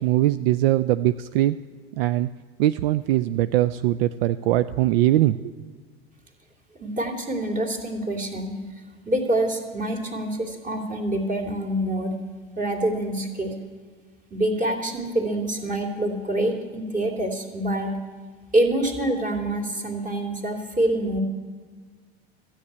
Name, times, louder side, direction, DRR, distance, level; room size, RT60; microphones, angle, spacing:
voice 1, 0.0-1.6 2.0-2.3 2.6-5.5, right 14 dB, 70° right, 13 dB, 0.4 m, -21 dB
voice 2, 6.8-8.6 9.1-12.2 12.6-13.5 14.3-17.9 18.5-21.2, right 1 dB, 25° right, 3 dB, 2.6 m, -26 dB
13.0 x 8.7 x 8.1 m, 1.5 s
hypercardioid pair, 85°, 30 cm